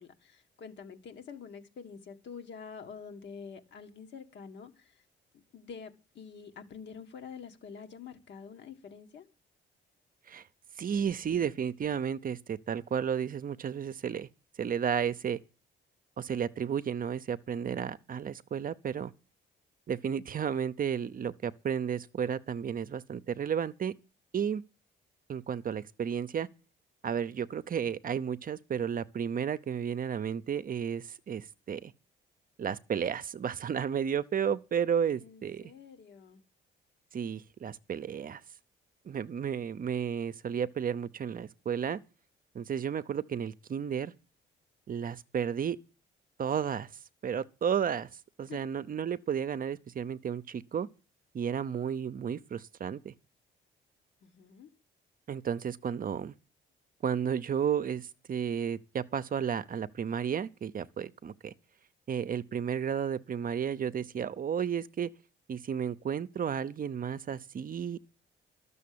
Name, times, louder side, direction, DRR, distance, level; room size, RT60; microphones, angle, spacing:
voice 1, 0.0-5.0 5.3-9.3 35.2-36.4 48.5-48.6 54.2-54.7, left 6 dB, 65° left, 1.8 m, -47 dB
voice 2, 10.8-14.3 14.6-15.4 16.2-19.1 19.9-23.9 24.3-24.6 25.3-26.5 27.0-31.9 32.6-35.7 37.1-38.4 39.1-42.0 42.5-44.1 44.9-45.8 46.4-46.9 47.2-48.1 48.4-50.9 51.3-53.1 55.3-56.3 57.0-61.5 62.1-65.1 65.5-68.0, right 8 dB, 45° right, 0.7 m, -32 dB
12.5 x 6.9 x 8.6 m
cardioid pair, 90°, 20 cm